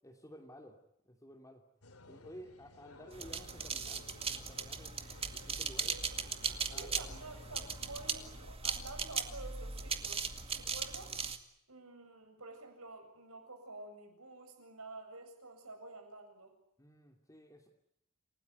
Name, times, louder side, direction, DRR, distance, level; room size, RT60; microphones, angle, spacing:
voice 1, 0.0-1.6 2.1-5.9 6.7-7.1 16.8-17.7, equal, 15° left, 1 dB, 2.8 m, -54 dB
sound 1, 1.8-8.6, left 2 dB, 75° left, 2.9 m, -56 dB
sound 2, 3.1-11.4, right 5 dB, 25° right, 2.1 m, -38 dB
voice 2, 6.7-11.2 11.7-16.6, right 2 dB, 75° right, 5 dB, 7.7 m, -50 dB
29.0 x 18.5 x 9.6 m, 0.78 s
head